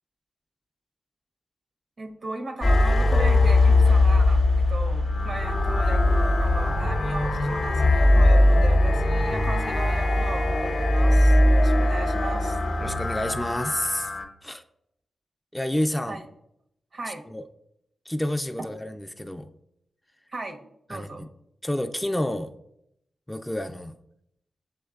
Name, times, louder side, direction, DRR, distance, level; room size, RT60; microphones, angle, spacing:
voice 1, 2.0-4.4 4.7-12.6 16.1-16.3 16.9-17.3 20.3-20.6 20.9-21.2, right 2 dB, 60° right, 4 dB, 0.6 m, -36 dB
sound 1, 2.6-14.2, left 1 dB, 55° left, 0.6 m, -20 dB
voice 2, 12.8-14.1 14.4-14.6 15.5-16.2 17.3-17.4 18.1-19.5 20.9-21.3 21.6-22.5 23.3-23.9, left 1 dB, 10° left, 8 dB, 0.3 m, -29 dB
7.0 x 3.0 x 2.3 m, 0.77 s
cardioid pair, 55°, 0 cm